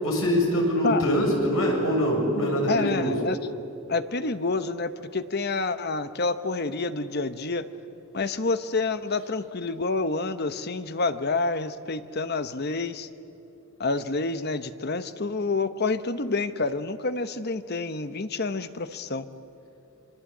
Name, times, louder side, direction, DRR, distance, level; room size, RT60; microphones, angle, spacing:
voice 1, 0.0-3.2, equal, 70° left, 0 dB, 7.2 m, -24 dB
voice 2, 2.7-3.4 3.9-7.7 8.1-13.1 13.8-19.3, left 3 dB, 50° left, 11 dB, 1.0 m, -28 dB
27.0 x 23.0 x 8.5 m, 2.9 s
head